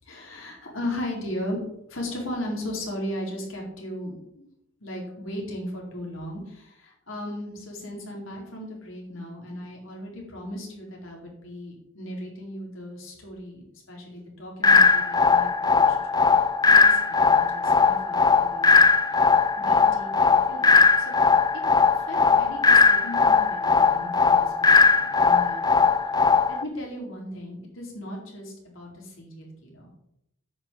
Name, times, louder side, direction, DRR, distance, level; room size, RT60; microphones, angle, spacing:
voice 1, 0.1-1.6 1.9-4.4 4.8-18.8 19.6-21.1 21.9-25.6 26.5-30.0, left 1 dB, 75° left, -1 dB, 4.2 m, -37 dB
sound 1, 14.6-26.6, left 4 dB, 20° left, 0.5 m, -19 dB
10.0 x 5.8 x 8.7 m, 0.80 s
head